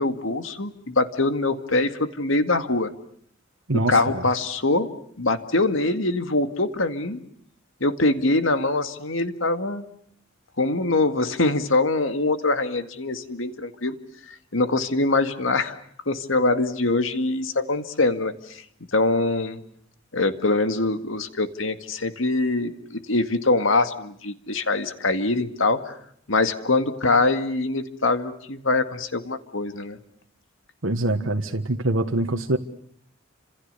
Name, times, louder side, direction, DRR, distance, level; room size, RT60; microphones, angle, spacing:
voice 1, 0.0-2.9 3.9-4.9 5.2-7.2 7.8-9.9 10.6-14.0 14.3-15.7 16.1-18.6 18.9-19.6 20.1-26.0 26.3-30.0, left 2 dB, 70° left, 9 dB, 2.1 m, -23 dB
voice 2, 3.7-4.2 30.8-32.6, right 2 dB, 70° right, 4 dB, 1.6 m, -24 dB
30.0 x 27.0 x 6.9 m, 0.65 s
head